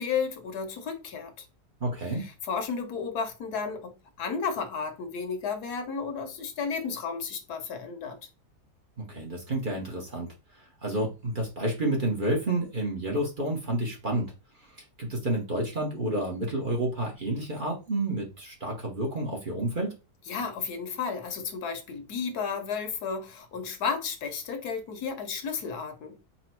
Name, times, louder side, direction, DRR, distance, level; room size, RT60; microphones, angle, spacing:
voice 1, 0.0-1.4 2.2-8.2 20.3-26.1, left 5 dB, 80° left, 1.4 m, -33 dB
voice 2, 1.8-2.3 9.0-10.3 10.8-14.3 15.0-19.9, right 1 dB, 35° right, 1.0 m, -30 dB
4.2 x 2.2 x 4.5 m
omnidirectional pair, 1.6 m